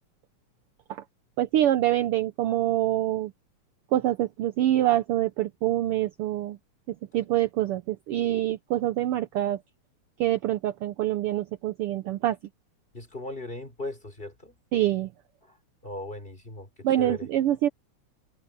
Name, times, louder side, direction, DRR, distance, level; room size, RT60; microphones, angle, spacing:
voice 1, 1.4-3.3 3.9-6.6 6.9-9.6 10.2-12.4 14.7-15.1 16.8-17.7, right 13 dB, 80° right, 1.3 m, -25 dB
voice 2, 12.9-14.6 15.4-15.6 15.8-17.3, left 2 dB, 15° left, 4.1 m, -38 dB
omnidirectional pair, 3.4 m